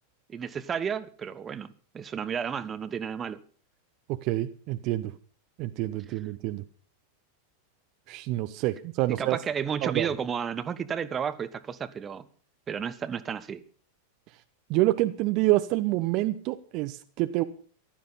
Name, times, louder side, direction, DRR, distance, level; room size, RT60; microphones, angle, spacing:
voice 1, 0.3-3.4 6.1-6.2 9.1-12.2 12.7-13.6, right 7 dB, 20° right, 1.1 m, -32 dB
voice 2, 4.3-5.1 5.6-6.6 8.1-9.4 9.8-10.1 14.7-17.4, right 17 dB, 40° right, 0.9 m, -27 dB
15.0 x 12.5 x 5.6 m
figure-of-eight pair, 90°, 0 cm